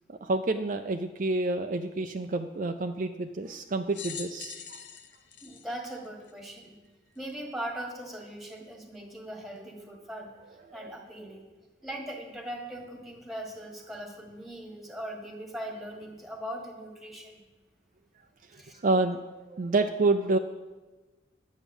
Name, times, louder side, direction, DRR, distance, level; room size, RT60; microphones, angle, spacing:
voice 1, 0.1-4.8 10.7-10.9 18.5-19.2 19.5-20.4, right 2 dB, 45° right, 6 dB, 0.5 m, -28 dB
sound 1, 3.9-6.6 7.3-7.4 8.5-8.6, left 7 dB, 80° left, 0.9 m, -43 dB
voice 2, 5.4-6.8 7.1-10.4 10.7-11.5 11.8-17.4 18.5-18.8, right 1 dB, ahead, 1 dB, 1.6 m, -40 dB
10.0 x 8.2 x 7.1 m, 1.2 s
head